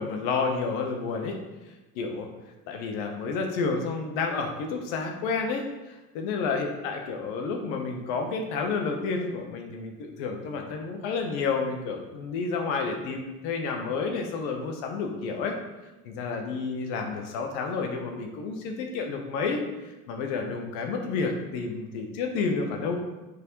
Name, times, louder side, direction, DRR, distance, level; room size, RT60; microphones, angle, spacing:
voice 1, 0.0-1.4 1.9-2.3 2.7-15.5 16.0-23.0, left 4 dB, 75° left, 3 dB, 1.2 m, -30 dB
9.3 x 3.8 x 3.2 m, 1.1 s
hypercardioid pair, 75°, 45 cm